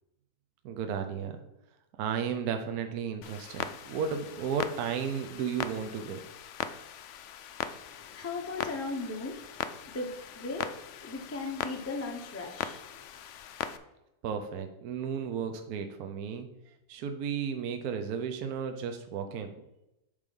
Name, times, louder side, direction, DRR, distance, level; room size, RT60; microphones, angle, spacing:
voice 1, 0.6-1.4 2.0-6.2 14.2-16.5 16.9-19.5, right 7 dB, 70° right, 6 dB, 1.1 m, -34 dB
Clock, 3.2-13.8, left 9 dB, 75° left, 0.7 m, -40 dB
voice 2, 7.7-13.1, left 3 dB, 10° left, 2 dB, 0.8 m, -38 dB
8.3 x 3.6 x 5.3 m, 0.92 s
omnidirectional pair, 1.7 m